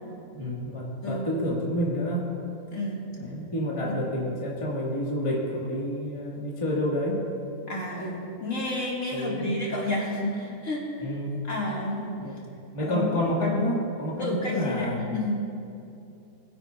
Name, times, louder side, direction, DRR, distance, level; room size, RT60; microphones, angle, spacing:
voice 1, 0.3-2.3 3.2-7.2 7.9-8.0 9.1-9.5 11.0-11.4 12.2-12.4 12.7-15.0, left 1 dB, 20° left, -4 dB, 1.6 m, -29 dB
voice 2, 2.7-3.1 3.8-3.9 7.7-10.9 11.4-12.1 12.8-13.2 14.2-15.4, left 1 dB, 50° left, -4 dB, 2.2 m, -30 dB
21.0 x 10.0 x 2.3 m, 2.7 s
omnidirectional pair, 1.7 m